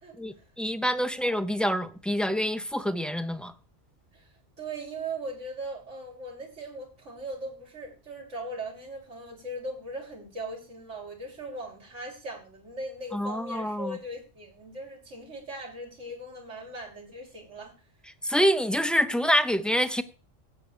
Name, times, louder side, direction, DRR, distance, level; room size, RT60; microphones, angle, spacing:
voice 1, 0.2-3.5 13.1-14.0 18.2-20.0, equal, ahead, 0.5 m, -26 dB
voice 2, 4.6-17.7, right 1 dB, 75° right, 3.3 m, -39 dB
14.5 x 4.9 x 8.4 m
omnidirectional pair, 1.3 m